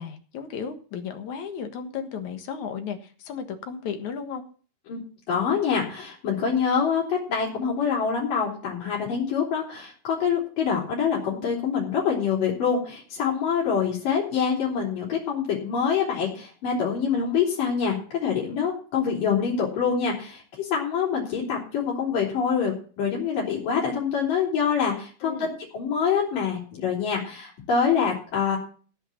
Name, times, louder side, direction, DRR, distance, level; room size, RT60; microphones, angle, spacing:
voice 1, 0.0-4.4 25.2-25.5, left 7 dB, 65° left, 7 dB, 2.8 m, -34 dB
voice 2, 5.3-28.6, left 6 dB, 90° left, -4 dB, 5.4 m, -25 dB
16.5 x 5.7 x 7.3 m, 0.41 s
omnidirectional pair, 3.7 m